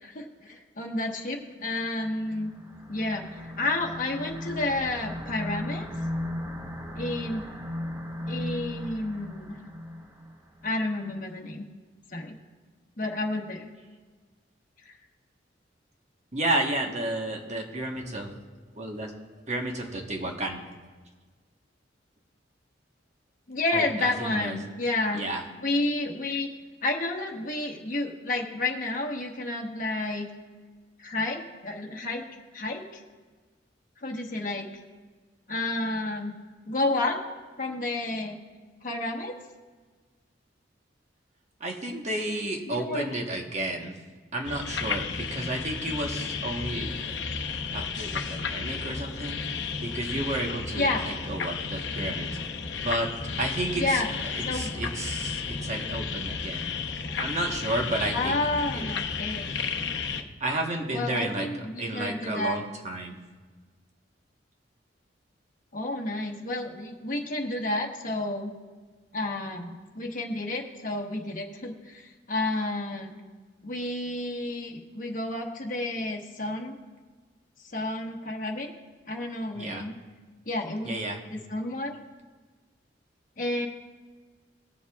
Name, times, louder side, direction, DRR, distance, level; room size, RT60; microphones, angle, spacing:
voice 1, 0.0-2.5 2.9-5.9 7.0-7.5 8.3-9.6 10.6-11.7 12.1-12.4 13.0-13.7 14.8-14.9 23.5-25.2 25.6-26.5 26.8-30.3 31.0-32.2 32.5-33.0 34.0-34.7 35.5-36.3 36.7-37.2 37.6-38.4 38.8-39.4 42.7-43.2 50.7-51.1 53.8-54.1 54.5-54.7 58.1-59.6 60.9-62.6 65.7-68.5 69.1-73.2 73.6-76.7 77.7-78.7 79.1-79.9 80.5-81.0 81.3-82.0 83.4-83.7, left 2 dB, 50° left, 2 dB, 1.1 m, -30 dB
sound 1, 2.1-10.7, left 1 dB, 20° right, 0.8 m, -36 dB
voice 2, 16.3-18.3 18.7-19.1 19.5-20.7 23.7-24.6 25.1-25.4 41.6-43.9 44.3-47.1 47.7-49.4 49.8-52.3 52.7-53.1 53.4-56.7 57.2-58.4 58.7-58.9 60.4-61.5 61.8-63.1 79.5-79.9 80.8-81.2, right 1 dB, 40° right, 2 dB, 1.2 m, -32 dB
sound 2, 44.4-60.2, left 5 dB, 70° left, 0.8 m, -33 dB
19.5 x 7.2 x 2.3 m, 1.4 s
head